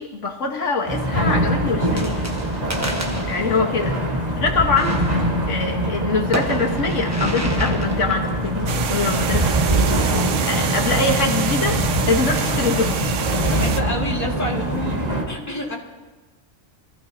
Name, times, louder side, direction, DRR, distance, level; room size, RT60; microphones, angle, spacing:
voice 1, 0.0-2.3 3.3-4.0 4.4-5.0 5.5-9.5 9.7-10.0 10.4-13.0, left 4 dB, 80° left, 2 dB, 1.7 m, -23 dB
sound 1, 0.9-15.2, right 1 dB, 35° right, 1.9 m, -23 dB
sound 2, 1.8-11.0, right 1 dB, 15° right, 1.1 m, -33 dB
sound 3, 8.7-13.8, right 7 dB, 85° right, 1.1 m, -26 dB
voice 2, 13.5-15.0 15.3-15.8, equal, 15° left, -3 dB, 2.2 m, -28 dB
25.5 x 15.0 x 2.8 m, 1.2 s
omnidirectional pair, 1.2 m